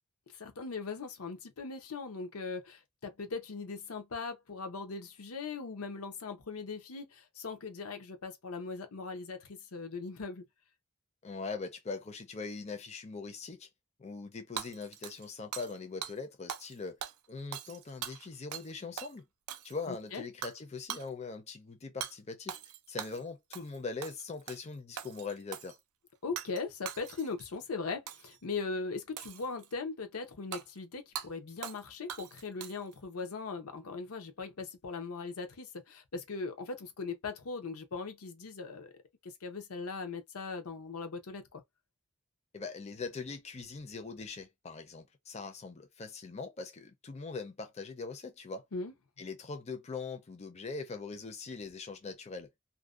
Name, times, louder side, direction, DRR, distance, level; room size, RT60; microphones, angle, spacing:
voice 1, 0.3-10.4 19.9-20.2 26.2-38.9 39.2-41.6 48.7-48.9, left 4 dB, 90° left, 0.7 m, -39 dB
voice 2, 11.2-13.7 14.0-17.0 17.3-19.2 19.6-22.6 22.9-25.8 42.5-48.6 49.2-52.5, left 4 dB, 30° left, 0.4 m, -41 dB
Hammer / Shatter, 14.6-15.8 16.0-16.2 16.5-16.7 17.0-18.7 19.0-19.1 19.5-19.9 20.4-20.6 20.9-21.1 22.0-22.1 22.5-23.2 23.5-23.8 24.0-24.6 25.0-25.8 26.4-26.6 26.9-27.5 28.1-28.4 29.2-29.7 30.5-30.6 31.2-31.3 31.6-31.8 32.1-32.9, right 10 dB, 90° right, 0.4 m, -42 dB
2.5 x 2.1 x 2.3 m
head